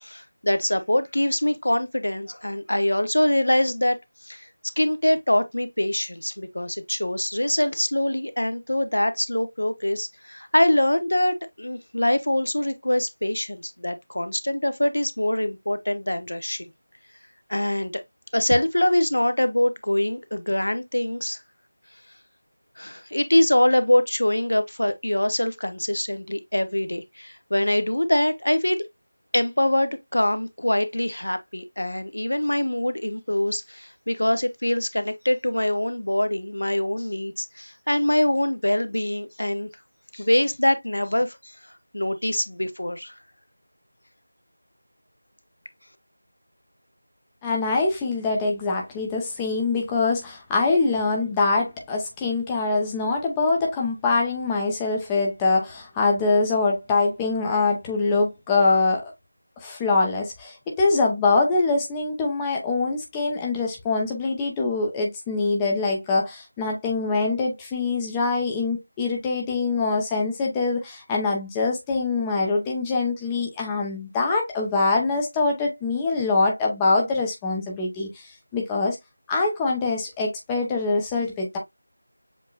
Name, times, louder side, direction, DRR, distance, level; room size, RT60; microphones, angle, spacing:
voice 1, 0.0-4.0 4.2-4.5 4.8-16.7 17.5-18.0 18.3-21.4 22.8-28.8 29.3-39.7 40.1-41.5 41.9-43.1, left 1 dB, 70° left, 0.8 m, -24 dB
voice 2, 47.4-59.1 59.6-79.0 79.3-81.6, left 3 dB, 10° left, 0.6 m, -24 dB
7.2 x 2.8 x 2.3 m
figure-of-eight pair, 170°, 0 cm